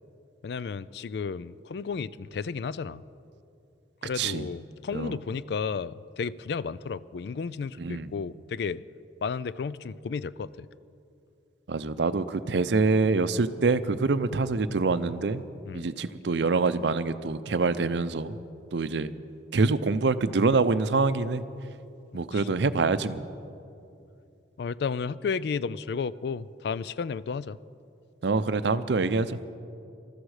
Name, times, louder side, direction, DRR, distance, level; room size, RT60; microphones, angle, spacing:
voice 1, 0.4-3.0 4.0-8.8 9.2-10.7 15.7-15.9 22.1-22.4 24.6-27.6, left 5 dB, 60° left, 18 dB, 0.3 m, -33 dB
voice 2, 4.2-4.5 4.9-5.2 7.8-8.1 11.7-15.4 15.7-18.4 18.7-19.1 19.5-21.4 22.1-23.3 28.2-29.4, right 3 dB, 75° right, 13 dB, 0.6 m, -25 dB
20.5 x 13.5 x 4.9 m, 2.6 s
head